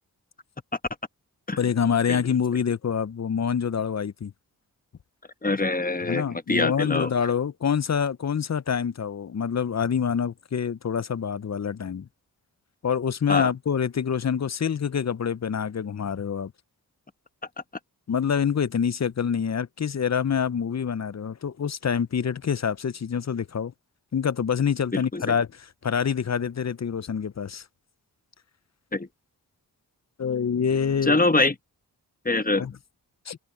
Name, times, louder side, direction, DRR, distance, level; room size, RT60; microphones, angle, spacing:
voice 1, 1.6-4.3 5.5-5.6 6.0-12.1 12.8-16.5 18.1-23.7 24.1-27.6 30.2-31.2 32.5-32.7 33.3-33.4, left 7 dB, 40° left, 0.7 m, -26 dB
voice 2, 5.4-6.2 6.5-7.1 13.3-13.5 24.9-25.2 28.9-29.1 31.1-31.5 32.2-32.7, left 2 dB, 20° left, 1.2 m, -23 dB
cardioid pair, 40°, 40 cm